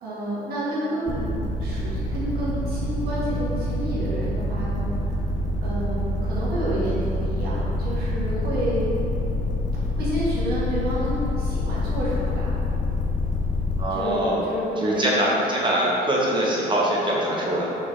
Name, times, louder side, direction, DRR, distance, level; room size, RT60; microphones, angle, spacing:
voice 1, 0.0-5.2 5.6-8.9 9.9-12.5 13.9-15.4, right 1 dB, 65° right, -8 dB, 1.4 m, -30 dB
sound 1, 1.1-13.8, left 2 dB, 45° left, 0.8 m, -26 dB
voice 2, 13.8-14.4 14.8-17.7, right 1 dB, 30° right, -5 dB, 0.9 m, -23 dB
4.1 x 3.8 x 3.2 m, 2.9 s
cardioid pair, 110°, 17 cm